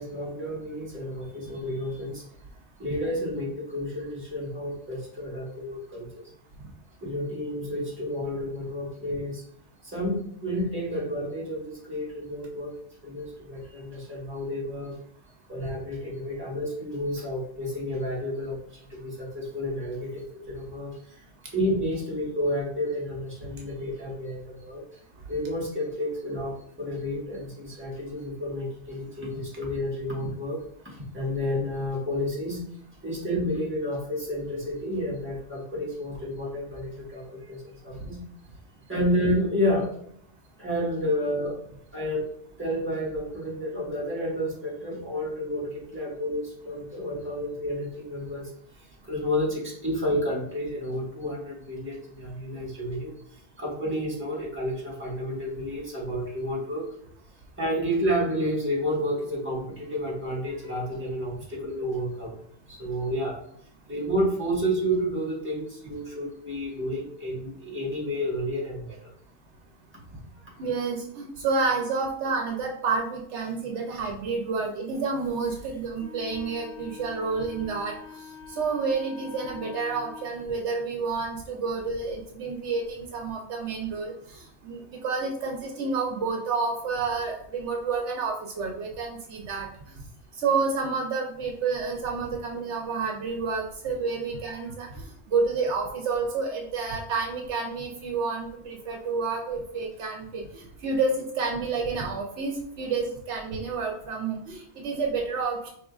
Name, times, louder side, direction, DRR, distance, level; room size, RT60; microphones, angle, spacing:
voice 1, 0.0-2.2 2.8-6.2 7.0-9.4 9.8-12.7 13.0-15.0 15.5-21.3 21.5-25.0 25.3-32.6 33.0-38.2 38.9-39.9 40.6-41.6 41.9-42.3 42.6-56.9 57.6-62.3 62.7-63.4 63.9-69.1 70.1-70.7 94.5-94.7, equal, 10° right, -5 dB, 1.5 m, -30 dB
voice 2, 70.6-77.9 78.6-84.1 84.6-89.7 90.4-105.7, right 4 dB, 75° right, 1 dB, 1.0 m, -29 dB
Wind instrument woodwind instrument, 76.0-80.3, left 6 dB, 60° left, 1.0 m, -44 dB
5.0 x 3.5 x 2.4 m, 0.67 s
omnidirectional pair, 1.2 m